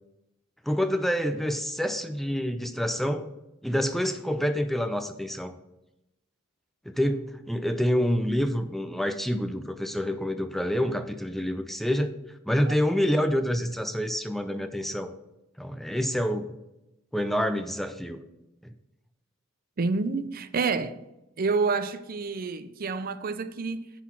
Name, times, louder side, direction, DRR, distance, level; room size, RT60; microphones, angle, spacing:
voice 1, 0.6-3.3 3.6-5.6 6.9-12.1 12.5-15.1 15.6-16.5 17.1-18.2, equal, ahead, 0.4 m, -27 dB
voice 2, 19.8-21.0 21.4-23.9, right 4 dB, 45° right, 0.5 m, -28 dB
10.0 x 4.0 x 7.4 m
head